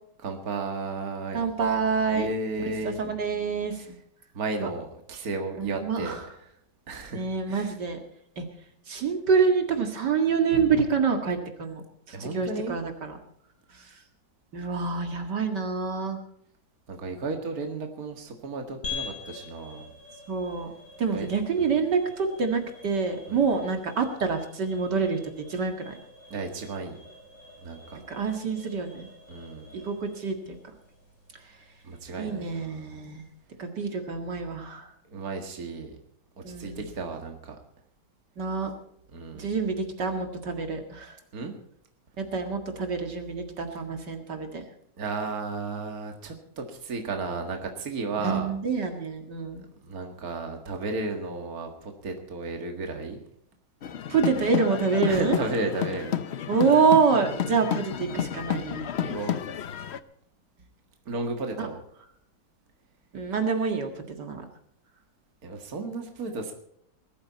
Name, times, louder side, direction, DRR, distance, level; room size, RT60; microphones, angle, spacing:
voice 1, 0.2-1.4 2.1-3.0 3.8-3.9 4.3-6.2 6.9-7.7 12.1-12.8 16.9-19.9 21.1-21.3 21.6-21.8 23.3-23.4 26.3-27.0 27.6-28.0 29.3-29.7 31.8-33.0 35.1-35.9 36.6-37.6 39.1-39.5 41.3-41.5 45.0-48.5 49.8-53.2 55.0-56.1 59.0-59.4 61.1-61.8 65.4-66.5, right 3 dB, 55° right, 4 dB, 2.3 m, -33 dB
voice 2, 1.3-2.3 2.8-3.8 4.6-4.7 5.6-6.2 7.1-8.0 8.4-8.5 8.9-11.8 12.2-13.2 14.5-16.2 20.3-20.7 21.0-25.2 25.5-25.9 28.1-29.1 29.8-30.4 32.2-33.2 33.6-34.9 36.4-36.9 38.4-38.7 39.3-41.1 42.2-44.6 48.2-49.6 54.1-55.4 56.5-58.8 61.6-61.7 63.1-63.9 64.2-64.4, right 5 dB, 75° right, 5 dB, 2.6 m, -26 dB
sound 1, 18.8-33.4, left 4 dB, 90° left, 5.3 m, -46 dB
sound 2, 53.8-60.0, left 9 dB, 55° left, 0.8 m, -31 dB
20.5 x 13.5 x 4.2 m, 0.68 s
omnidirectional pair, 1.9 m